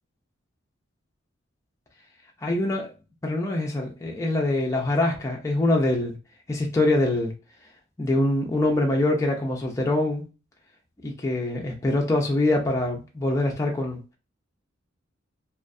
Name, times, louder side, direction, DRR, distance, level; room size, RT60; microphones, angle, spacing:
voice 1, 2.4-2.9 3.2-6.2 6.5-7.3 8.0-10.2 11.0-14.0, left 2 dB, 15° left, 0.3 m, -24 dB
2.3 x 2.2 x 2.5 m
head